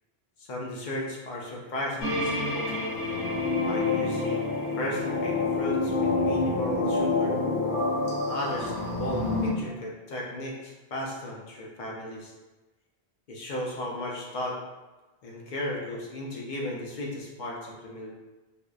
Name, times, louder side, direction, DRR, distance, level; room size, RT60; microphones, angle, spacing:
voice 1, 0.4-2.7 3.7-7.4 8.1-12.3 13.3-14.6 15.2-18.1, left 1 dB, 55° left, -2 dB, 0.6 m, -35 dB
sound 1, 2.0-9.5, left 3 dB, 80° left, 1.0 m, -27 dB
2.6 x 2.1 x 2.3 m, 1.1 s
omnidirectional pair, 1.1 m